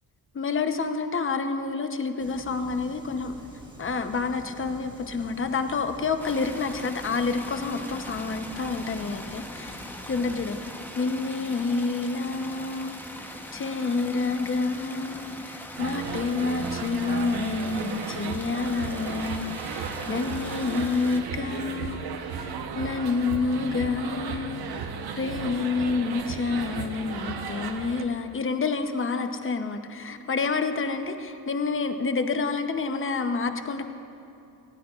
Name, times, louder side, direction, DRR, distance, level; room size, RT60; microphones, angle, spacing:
voice 1, 0.3-3.3 3.8-33.8, left 4 dB, 30° left, 7 dB, 0.9 m, -29 dB
sound 1, 2.2-10.7, right 1 dB, 10° right, 1.7 m, -46 dB
sound 2, 6.2-21.2, left 1 dB, 5° left, 0.9 m, -41 dB
sound 3, 15.8-28.0, right 6 dB, 65° right, 1.0 m, -35 dB
19.5 x 16.0 x 2.5 m, 2.6 s
cardioid pair, 100°, 40 cm